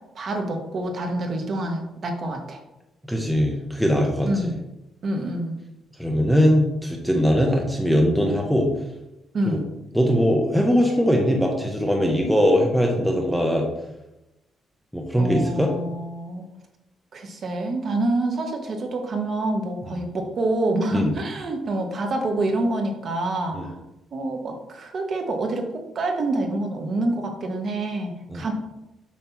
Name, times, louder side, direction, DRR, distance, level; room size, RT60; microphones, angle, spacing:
voice 1, 0.1-2.6 4.2-4.6 5.0-5.6 9.3-9.6 15.2-16.5 17.1-23.7 24.1-28.5, right 2 dB, 40° right, 3 dB, 1.0 m, -27 dB
voice 2, 3.1-4.5 6.0-8.7 9.5-9.6 9.9-13.6 14.9-15.7 19.9-20.0 20.9-21.1 23.5-23.7 28.3-28.4, equal, ahead, 0 dB, 0.6 m, -21 dB
7.3 x 2.9 x 5.7 m, 0.94 s
cardioid pair, 175°, 0 cm